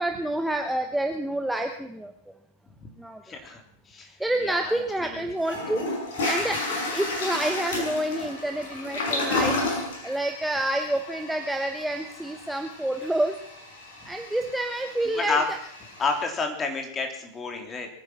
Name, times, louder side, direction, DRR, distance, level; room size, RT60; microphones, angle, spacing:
voice 1, 0.0-2.1 3.0-3.2 4.2-5.8 6.2-13.4 14.0-15.6, right 1 dB, 5° right, 5 dB, 1.1 m, -28 dB
voice 2, 3.2-3.6 3.9-5.2 15.2-15.4 16.0-17.9, left 4 dB, 20° left, 4 dB, 3.4 m, -30 dB
Toilet flush, 4.9-5.0 5.4-16.2, left 2 dB, 60° left, 6.6 m, -32 dB
23.0 x 10.0 x 6.1 m, 0.74 s
figure-of-eight pair, 90°, 0 cm